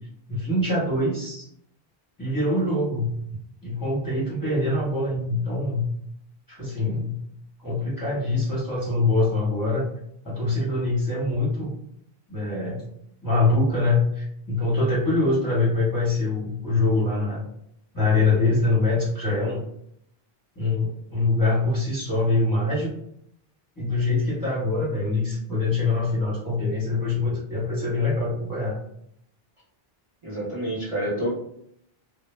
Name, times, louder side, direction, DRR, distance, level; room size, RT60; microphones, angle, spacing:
voice 1, 0.3-1.5 2.2-3.1 3.6-5.9 6.5-7.2 7.6-9.8 10.2-11.7 12.3-12.8 13.2-17.4 17.9-19.6 20.6-22.9 23.8-28.8, left 2 dB, 20° left, -8 dB, 0.8 m, -24 dB
voice 2, 30.2-31.3, right 1 dB, 35° right, -8 dB, 0.7 m, -28 dB
2.0 x 2.0 x 3.0 m, 0.71 s
omnidirectional pair, 1.0 m